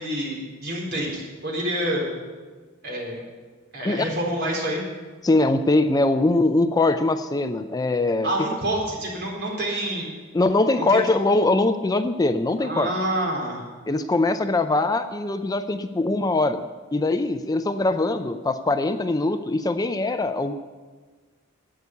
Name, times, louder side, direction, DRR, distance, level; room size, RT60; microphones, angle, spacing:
voice 1, 0.0-2.0 2.8-3.2 3.7-4.8 8.2-10.1 10.9-11.0 12.6-13.6, right 1 dB, 55° right, -2 dB, 4.0 m, -27 dB
voice 2, 5.2-8.3 10.3-12.9 13.9-16.6 16.9-20.5, left 2 dB, 20° left, 9 dB, 0.4 m, -22 dB
11.5 x 8.5 x 8.1 m, 1.4 s
head